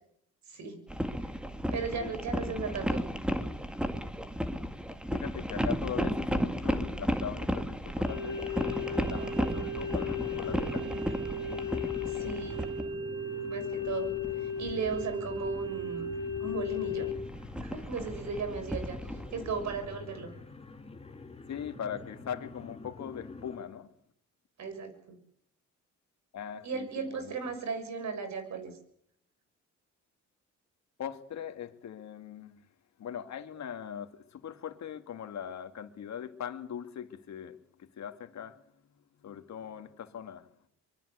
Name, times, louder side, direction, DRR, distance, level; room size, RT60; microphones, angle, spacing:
voice 1, 0.5-0.8 1.7-3.0 12.1-12.6 13.5-16.1 16.4-17.1 17.6-20.3 24.6-25.2 26.6-28.7, right 4 dB, 65° right, 6.7 m, -36 dB
sound 1, 0.9-13.0 13.7-15.8 16.1-19.9, equal, 5° right, 2.2 m, -34 dB
voice 2, 2.0-2.7 5.1-11.2 21.5-23.9 26.3-27.6 31.0-32.6 33.0-38.6 39.2-40.5, left 8 dB, 65° left, 2.4 m, -41 dB
sound 2, 8.1-17.1, left 3 dB, 35° right, 6.5 m, -35 dB
sound 3, 8.8-23.6, left 3 dB, 20° left, 2.7 m, -47 dB
25.0 x 22.0 x 8.2 m
cardioid pair, 90°, 30 cm